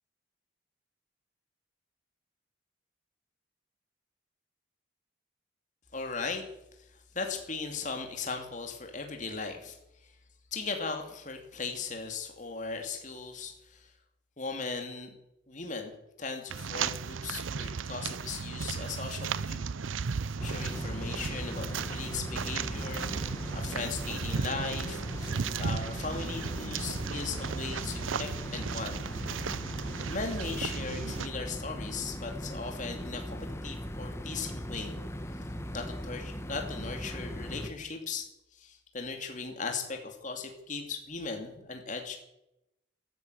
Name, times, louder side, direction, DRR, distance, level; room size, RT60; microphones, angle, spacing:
voice 1, 5.9-6.5 6.9-9.8 10.0-10.1 10.5-13.9 14.4-15.1 15.5-19.7 20.4-23.1 23.5-29.0 30.1-35.0 35.7-38.3 38.5-42.2, left 4 dB, 40° left, 4 dB, 2.6 m, -38 dB
sound 1, 16.5-31.3, right 5 dB, 80° right, 0.6 m, -35 dB
sound 2, 20.4-37.7, equal, 15° left, 1.2 m, -39 dB
13.5 x 13.0 x 8.1 m, 0.85 s
head